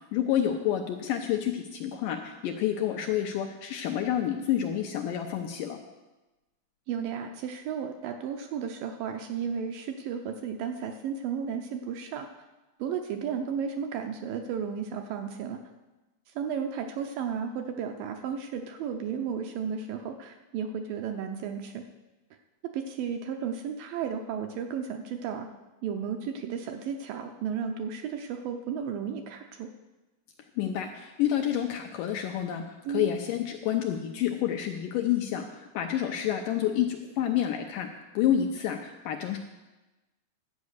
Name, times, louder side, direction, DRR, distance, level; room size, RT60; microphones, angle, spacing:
voice 1, 0.1-5.8 30.6-37.9 38.1-39.4, left 10 dB, 80° left, 4 dB, 2.0 m, -29 dB
voice 2, 6.9-12.3 12.8-15.6 16.4-21.8 22.7-25.5 25.8-29.7 32.9-33.2, right 7 dB, 75° right, 5 dB, 2.1 m, -33 dB
11.5 x 8.4 x 6.5 m, 1.1 s
omnidirectional pair, 4.5 m